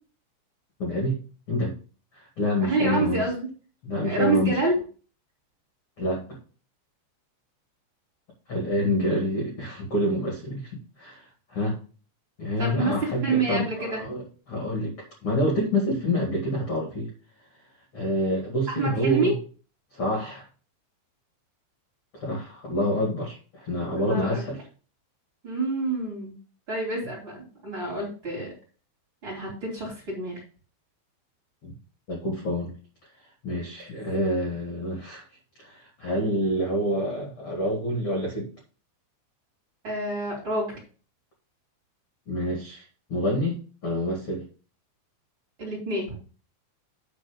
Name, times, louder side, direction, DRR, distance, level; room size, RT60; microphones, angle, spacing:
voice 1, 0.8-1.2 1.5-1.7 2.1-3.2 3.8-4.5 6.0-6.4 8.5-11.8 12.4-14.9 15.2-17.1 17.9-19.3 19.9-20.5 22.1-24.6 31.6-31.7 32.1-32.7 33.4-35.2 35.6-38.5 42.3-42.8 43.1-44.4, equal, 40° left, -1 dB, 2.0 m, -27 dB
voice 2, 2.6-3.5 4.0-4.8 12.6-14.0 18.7-19.3 23.9-24.4 25.4-26.3 26.7-28.5 29.2-30.4 39.8-40.8 45.6-46.2, right 2 dB, 25° right, -3 dB, 3.7 m, -28 dB
9.8 x 4.6 x 5.2 m, 0.38 s
omnidirectional pair, 5.4 m